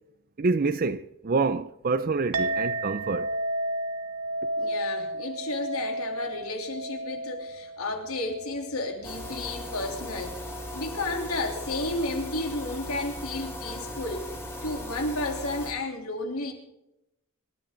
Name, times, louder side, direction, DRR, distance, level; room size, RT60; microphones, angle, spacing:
voice 1, 0.4-3.3, right 3 dB, 40° right, 0.5 m, -27 dB
Chink clink, 2.3-11.0, right 1 dB, 90° right, 1.2 m, -33 dB
voice 2, 4.6-10.4 10.7-14.3 14.6-16.5, left 2 dB, 80° left, 3.3 m, -32 dB
sound 1, 9.0-15.7, left 1 dB, 10° left, 2.6 m, -38 dB
26.5 x 13.0 x 3.9 m
head